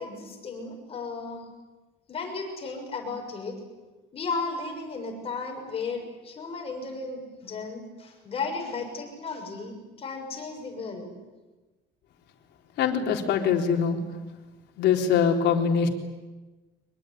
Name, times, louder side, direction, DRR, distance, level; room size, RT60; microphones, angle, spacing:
voice 1, 0.0-1.4 2.1-3.6 4.1-11.1, left 4 dB, 30° left, 2 dB, 6.6 m, -35 dB
voice 2, 12.8-14.0 14.8-15.9, left 7 dB, 60° left, 2 dB, 4.0 m, -23 dB
25.0 x 21.5 x 9.9 m, 1.2 s
cardioid pair, 160°, 20 cm